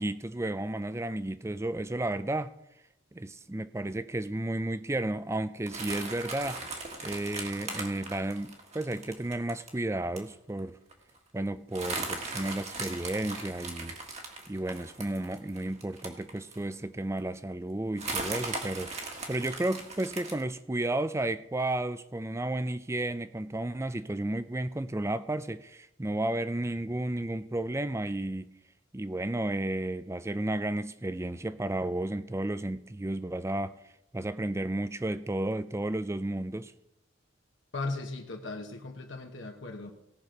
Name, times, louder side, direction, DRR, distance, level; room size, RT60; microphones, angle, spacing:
voice 1, 0.0-2.5 3.1-6.6 7.0-10.8 11.3-14.0 14.5-28.5 28.9-33.8 34.1-36.7, right 1 dB, 15° right, 0.4 m, -32 dB
sound 1, 5.7-9.7 10.2-10.3 10.6-10.7 10.9-11.2 11.7-16.7 17.2-17.3 18.0-20.4, right 3 dB, 30° right, 1.7 m, -38 dB
voice 2, 37.7-39.9, left 3 dB, 60° left, 1.2 m, -37 dB
17.5 x 6.2 x 5.1 m
head